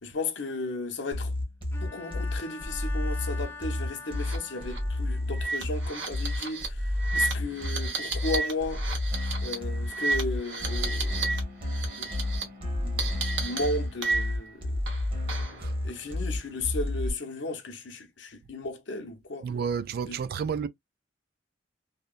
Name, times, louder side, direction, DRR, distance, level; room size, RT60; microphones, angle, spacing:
voice 1, 0.0-1.3 1.8-8.8 9.4-11.3 12.0-12.5 12.8-13.1 13.4-14.8 15.8-19.5 20.1-20.2, left 2 dB, 70° left, 0.7 m, -35 dB
sound 1, 1.1-17.1, left 1 dB, 30° right, 1.2 m, -31 dB
Bowed string instrument, 1.7-5.4, left 4 dB, 10° left, 0.5 m, -44 dB
sound 2, 4.1-4.4 4.7-4.8 5.3-11.4 11.7-12.4 13.0-14.5 14.9-15.6, right 4 dB, 75° right, 1.1 m, -32 dB
voice 2, 19.4-20.7, right 6 dB, 55° right, 0.3 m, -31 dB
2.8 x 2.1 x 2.4 m
head